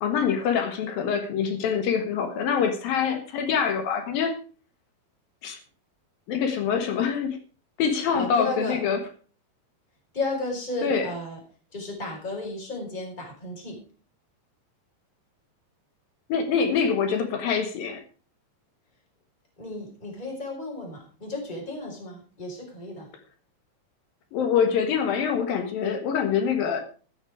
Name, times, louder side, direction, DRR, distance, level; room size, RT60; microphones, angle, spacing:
voice 1, 0.0-4.3 5.4-5.6 6.3-7.4 7.8-9.0 10.8-11.1 16.3-18.0 24.3-26.8, left 7 dB, 65° left, 7 dB, 2.7 m, -25 dB
voice 2, 8.1-8.8 10.1-11.4 11.7-13.8 19.6-23.1, left 2 dB, 10° left, -1 dB, 4.6 m, -33 dB
14.5 x 9.0 x 4.9 m, 0.39 s
omnidirectional pair, 5.3 m